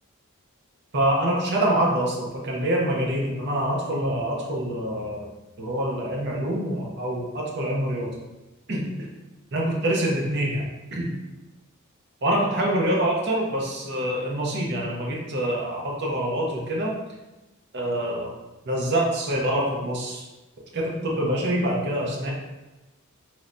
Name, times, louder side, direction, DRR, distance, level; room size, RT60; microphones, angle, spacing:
voice 1, 0.9-5.3 5.6-8.1 8.7-8.9 9.5-11.1 12.2-16.9 17.7-18.3 18.7-20.3 20.7-22.3, right 1 dB, 50° right, -2 dB, 0.7 m, -25 dB
3.1 x 3.1 x 2.6 m, 1.1 s
head